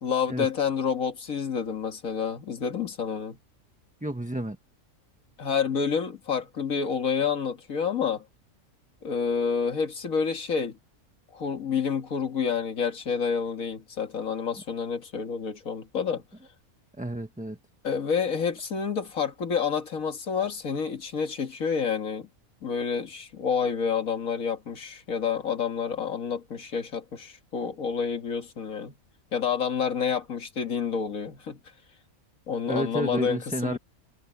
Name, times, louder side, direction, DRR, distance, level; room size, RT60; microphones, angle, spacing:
voice 1, 0.0-3.4 5.4-8.2 9.0-10.8 11.3-16.2 17.8-22.3 22.6-28.9 29.3-31.6 32.5-33.8, left 6 dB, 75° left, 2.2 m, -29 dB
voice 2, 4.0-4.6 17.0-17.6 32.7-33.8, right 1 dB, 5° right, 1.1 m, -30 dB
omnidirectional pair, 1.5 m